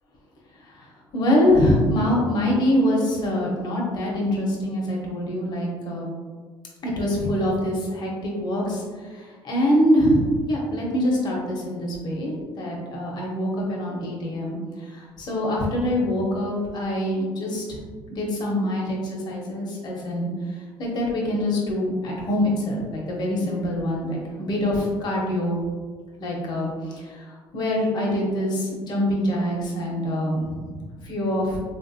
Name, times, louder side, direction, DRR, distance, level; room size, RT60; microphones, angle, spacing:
voice 1, 1.1-6.1 6.8-17.8 18.1-25.6 26.2-30.8 31.0-31.6, left 1 dB, 50° left, -2 dB, 0.9 m, -24 dB
3.2 x 2.5 x 2.7 m, 1.5 s
cardioid pair, 110°, 9 cm